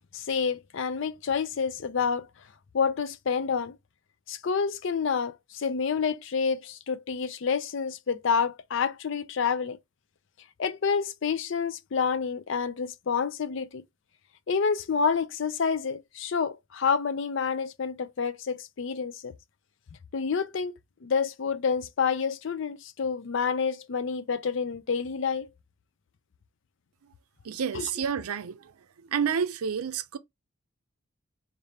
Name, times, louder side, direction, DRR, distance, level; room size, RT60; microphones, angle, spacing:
voice 1, 0.1-2.3 2.7-3.8 4.3-9.8 10.6-13.8 14.5-19.3 20.1-20.7 21.0-25.5 27.7-27.9, left 6 dB, 60° left, 0.4 m, -28 dB
voice 2, 27.4-28.7 29.1-30.2, right 7 dB, 90° right, 0.5 m, -29 dB
3.3 x 2.6 x 4.2 m
head